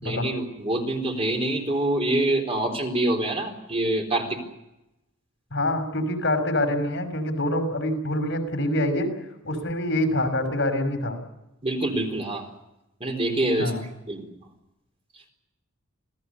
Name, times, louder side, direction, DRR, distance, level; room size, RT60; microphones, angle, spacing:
voice 1, 0.0-4.4 11.6-12.5 13.0-13.7 14.1-14.3, right 1 dB, 25° right, 3 dB, 4.1 m, -25 dB
voice 2, 5.5-9.1 9.4-11.2 13.6-13.8, left 1 dB, 55° left, 6 dB, 5.8 m, -25 dB
27.0 x 18.0 x 8.3 m, 0.89 s
head